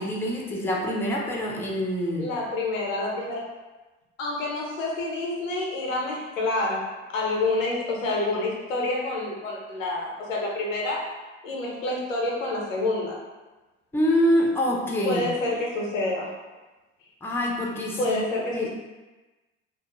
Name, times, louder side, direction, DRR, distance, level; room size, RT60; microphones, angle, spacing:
voice 1, 0.0-2.3 13.9-15.2 17.2-18.2 18.5-18.7, equal, 5° left, -2 dB, 0.5 m, -25 dB
voice 2, 2.2-3.4 4.2-11.0 11.4-13.2 15.0-16.3 18.0-18.7, left 2 dB, 85° left, -2 dB, 0.6 m, -28 dB
2.3 x 2.1 x 2.9 m, 1.2 s
hypercardioid pair, 60°, 38 cm